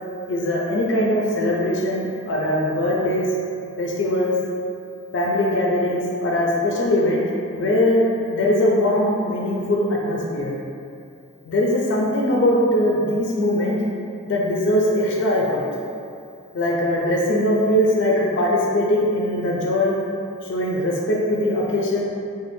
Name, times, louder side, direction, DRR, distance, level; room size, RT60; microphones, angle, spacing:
voice 1, 0.3-3.3 3.8-4.4 5.1-7.2 7.5-10.5 11.4-13.8 14.3-15.6 16.5-20.0 20.4-22.0, left 1 dB, 65° left, -2 dB, 0.4 m, -21 dB
3.1 x 2.2 x 3.1 m, 2.5 s
head